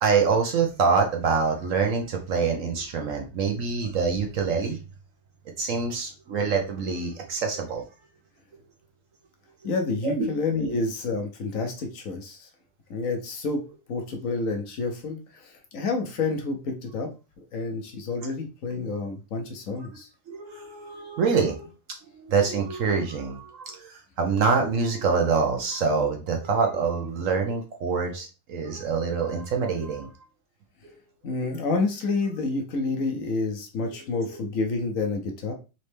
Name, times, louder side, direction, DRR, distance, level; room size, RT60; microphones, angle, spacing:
voice 1, 0.0-4.8 5.6-7.8 10.0-10.3 20.3-21.7 22.1-30.1 30.8-30.9 33.9-34.4, right 5 dB, 60° right, 3 dB, 0.8 m, -25 dB
voice 2, 9.6-12.5 12.9-13.6 13.9-17.1 17.5-20.1 31.2-35.5, left 3 dB, 55° left, 3 dB, 0.9 m, -29 dB
4.1 x 3.2 x 3.3 m, 0.31 s
omnidirectional pair, 2.2 m